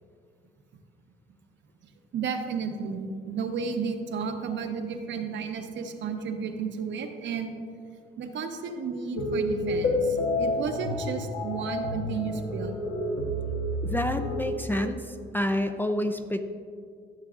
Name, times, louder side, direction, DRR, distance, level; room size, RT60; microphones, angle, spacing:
voice 1, 2.1-7.6 8.2-12.7, right 5 dB, 70° right, 5 dB, 0.8 m, -33 dB
sound 1, 9.2-14.5, left 1 dB, 80° left, 1.1 m, -29 dB
voice 2, 13.8-15.0 15.3-16.4, left 1 dB, 10° left, 8 dB, 0.4 m, -28 dB
13.0 x 6.6 x 2.5 m, 2.2 s
cardioid pair, 90°, 20 cm